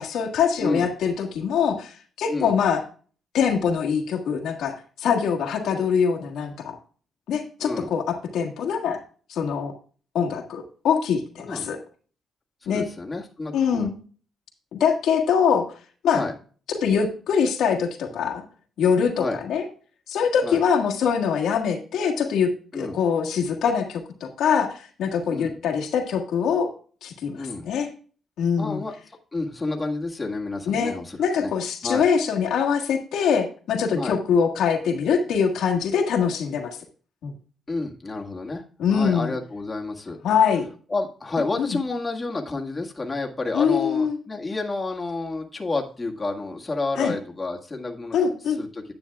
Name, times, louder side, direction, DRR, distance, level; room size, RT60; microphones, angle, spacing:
voice 1, 0.0-2.8 3.3-6.8 7.3-9.0 9.3-9.7 10.1-11.8 12.7-12.8 13.5-13.9 14.7-15.6 16.0-16.2 16.7-18.4 18.8-19.7 20.1-26.7 27.0-27.9 28.4-28.8 30.7-36.8 37.2-37.3 38.8-39.3 40.2-40.7 41.6-41.8 43.5-44.2 47.0-47.1 48.1-48.6, left 7 dB, 80° left, 1 dB, 1.6 m, -23 dB
voice 2, 12.6-13.9 16.1-16.3 19.2-19.4 20.4-20.6 22.7-23.0 25.3-25.5 27.3-27.6 28.6-28.9 29.3-31.5 31.8-32.0 33.9-34.2 37.7-40.2 40.9-48.2 48.6-48.8, left 3 dB, 25° left, 0 dB, 1.8 m, -30 dB
10.0 x 8.7 x 2.3 m, 0.40 s
cardioid pair, 95°, 0 cm